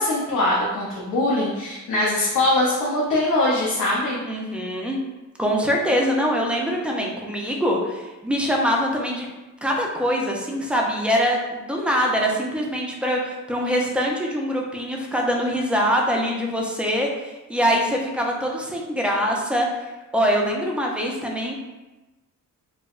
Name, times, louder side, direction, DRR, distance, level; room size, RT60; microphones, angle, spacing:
voice 1, 0.0-4.2, left 1 dB, 85° left, -5 dB, 0.7 m, -22 dB
voice 2, 4.2-5.0 5.4-9.3 9.6-19.7 20.1-21.5, equal, 5° right, -1 dB, 0.4 m, -23 dB
4.6 x 2.0 x 2.4 m, 1.1 s
wide cardioid pair, 145°, 31 cm